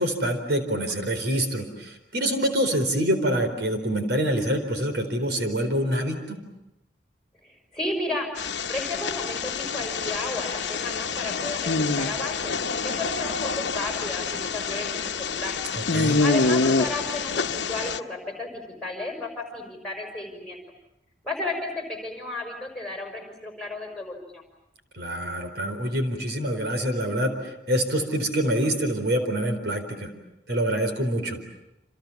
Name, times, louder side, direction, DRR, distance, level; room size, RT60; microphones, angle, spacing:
voice 1, 0.0-6.4 15.7-16.2 24.9-30.1 30.5-31.4, right 1 dB, 65° right, 6 dB, 4.3 m, -26 dB
voice 2, 7.4-8.3 8.7-15.5 16.2-20.6 21.2-24.4, left 2 dB, 5° left, 3 dB, 5.8 m, -33 dB
sound 1, 8.4-18.0, left 4 dB, 80° left, 1.1 m, -27 dB
29.0 x 28.0 x 7.2 m, 0.87 s
head